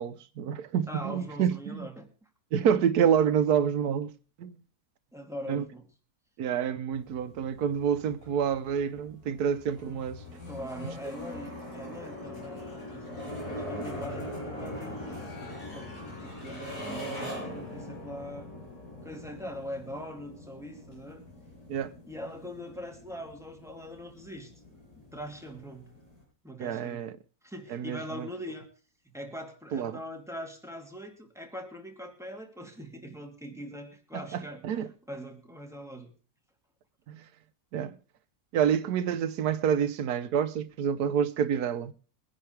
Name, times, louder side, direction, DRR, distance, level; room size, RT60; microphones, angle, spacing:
voice 1, 0.0-1.9 2.5-4.1 4.4-4.5 5.5-5.6 6.4-10.2 21.7-21.9 26.6-27.2 27.7-28.3 29.7-30.0 34.3-34.9 37.1-37.2 37.7-37.9 38.5-41.9, right 8 dB, 90° right, 1.3 m, -28 dB
voice 2, 0.9-2.1 5.1-5.9 10.3-15.3 15.7-18.5 19.0-21.2 22.1-24.5 25.0-25.9 26.4-27.1 27.4-28.7 29.0-36.1, equal, ahead, 2.5 m, -42 dB
sound 1, 6.9-26.2, left 1 dB, 85° left, 6.4 m, -42 dB
22.5 x 10.5 x 3.3 m
omnidirectional pair, 1.6 m